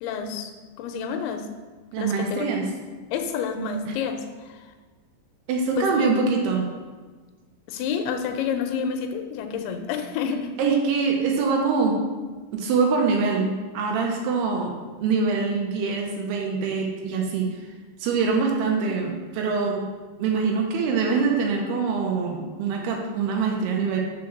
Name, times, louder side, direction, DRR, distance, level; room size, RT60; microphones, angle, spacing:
voice 1, 0.0-0.5 0.8-1.5 2.0-2.5 3.1-4.7 5.8-6.1 7.7-10.5, left 6 dB, 80° left, 6 dB, 2.7 m, -29 dB
voice 2, 1.9-2.7 3.9-4.0 5.5-6.7 10.6-12.0 12.5-17.6 18.0-19.9 20.2-24.0, right 4 dB, 85° right, 1 dB, 2.8 m, -24 dB
5.8 x 4.7 x 6.4 m, 1.4 s
omnidirectional pair, 4.6 m